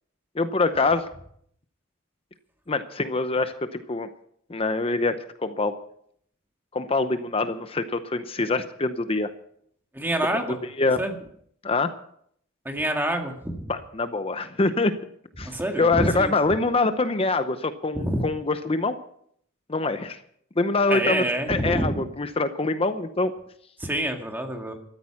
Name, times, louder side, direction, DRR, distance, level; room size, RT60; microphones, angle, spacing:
voice 1, 0.3-1.1 2.7-4.1 4.5-5.8 6.7-9.3 10.8-11.0 11.6-11.9 13.7-14.9 15.4-19.0 19.7-20.2 20.6-23.3, left 3 dB, 30° left, 10 dB, 0.7 m, -25 dB
voice 2, 9.9-10.6 11.0-11.1 12.7-13.6 15.4-16.3 18.0-18.2 20.9-22.0 23.8-24.7, right 1 dB, 10° right, 3 dB, 2.0 m, -27 dB
14.0 x 13.0 x 5.9 m, 0.66 s
head